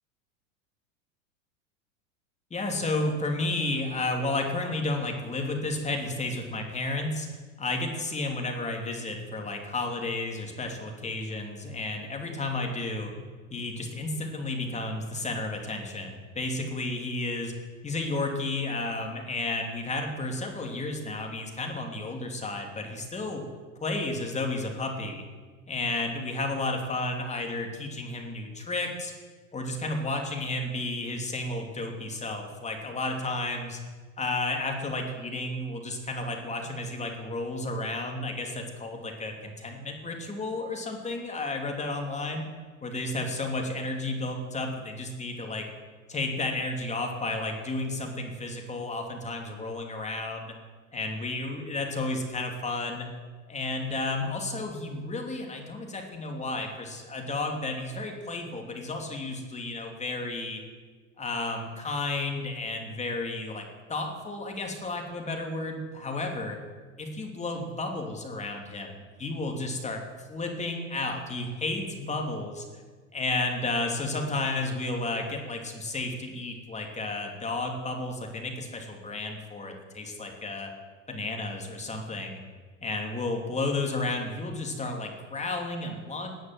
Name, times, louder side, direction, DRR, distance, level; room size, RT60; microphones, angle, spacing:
voice 1, 2.5-7.3 7.6-13.1 13.5-17.5 17.8-23.4 23.8-25.2 25.7-29.1 29.5-33.8 34.2-42.4 42.8-45.7 46.1-50.5 50.9-53.1 53.5-60.6 61.2-66.6 67.0-68.9 69.2-72.6 73.1-80.7 81.1-82.4 82.8-86.3, left 2 dB, 15° left, 3 dB, 3.1 m, -32 dB
18.5 x 9.6 x 7.7 m, 1.5 s
hypercardioid pair, 100°, 40 cm